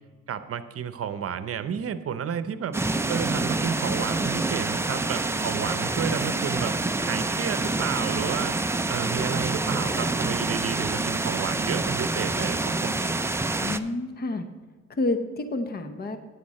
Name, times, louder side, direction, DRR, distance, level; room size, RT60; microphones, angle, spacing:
voice 1, 0.3-2.8 3.1-6.7 7.1-8.6 8.9-13.1, right 8 dB, 50° right, 11 dB, 0.8 m, -31 dB
sound 1, 2.7-13.8, right 2 dB, 10° right, 0.5 m, -27 dB
voice 2, 13.6-14.4 14.9-16.2, left 2 dB, 30° left, 8 dB, 0.9 m, -29 dB
9.4 x 8.6 x 4.2 m, 1.4 s
cardioid pair, 90°, 30 cm